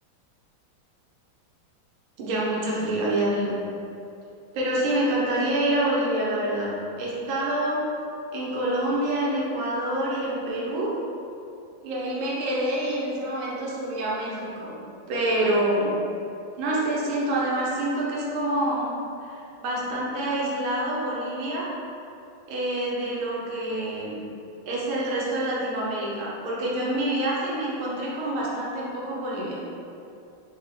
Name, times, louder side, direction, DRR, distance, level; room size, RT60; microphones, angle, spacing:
voice 1, 2.2-3.6 4.5-7.9 8.3-11.0 11.8-14.7 15.1-15.9 16.6-21.7 22.5-24.2 24.6-29.6, right 1 dB, 80° right, -5 dB, 1.6 m, -27 dB
5.1 x 2.9 x 2.6 m, 2.7 s
omnidirectional pair, 2.3 m